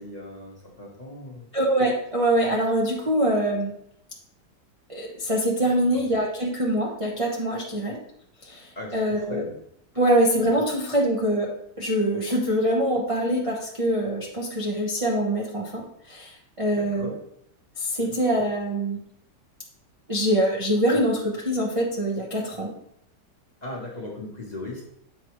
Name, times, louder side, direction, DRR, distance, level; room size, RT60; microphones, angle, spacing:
voice 1, 0.0-1.5 5.7-6.0 8.7-9.5 16.7-17.1 18.0-18.1 23.6-24.8, left 2 dB, 30° left, -3 dB, 0.9 m, -38 dB
voice 2, 1.5-3.7 4.9-8.0 8.4-9.4 10.0-11.5 11.8-17.1 17.8-19.0 20.1-22.7, right 1 dB, 35° right, -4 dB, 0.5 m, -24 dB
7.7 x 4.6 x 3.0 m, 0.73 s
omnidirectional pair, 1.9 m